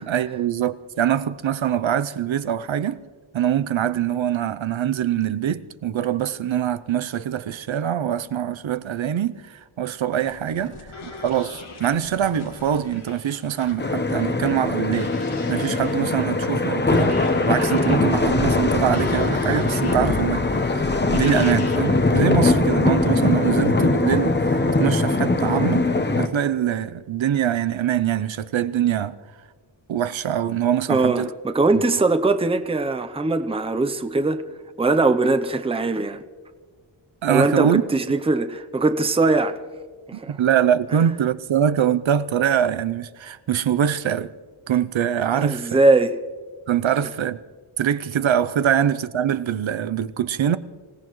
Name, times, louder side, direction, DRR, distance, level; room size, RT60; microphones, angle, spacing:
voice 1, 0.0-3.0 3.3-15.1 15.5-20.5 20.7-25.9 26.2-29.2 29.9-31.3 37.2-37.8 40.1-44.3 44.7-45.7 46.7-47.4 47.8-50.6, right 9 dB, 70° right, 0.7 m, -23 dB
sound 1, 10.2-22.1, left 3 dB, 80° left, 2.0 m, -41 dB
sound 2, 13.8-26.3, left 2 dB, 20° left, 0.8 m, -21 dB
voice 2, 30.9-34.4 34.8-36.2 37.3-39.6 40.1-40.4 45.3-46.2, right 3 dB, 10° right, 0.6 m, -21 dB
26.5 x 17.0 x 3.1 m
wide cardioid pair, 130°, 49 cm